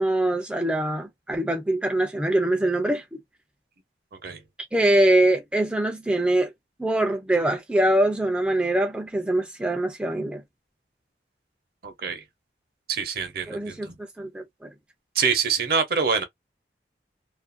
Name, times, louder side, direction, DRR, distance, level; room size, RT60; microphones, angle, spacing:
voice 1, 0.0-3.2 4.7-6.5 6.8-10.4 13.5-13.9 14.2-14.7, right 1 dB, 5° right, 0.3 m, -23 dB
voice 2, 11.8-12.2 12.9-14.0 15.1-16.2, right 6 dB, 55° right, 0.6 m, -25 dB
2.4 x 2.2 x 2.5 m
head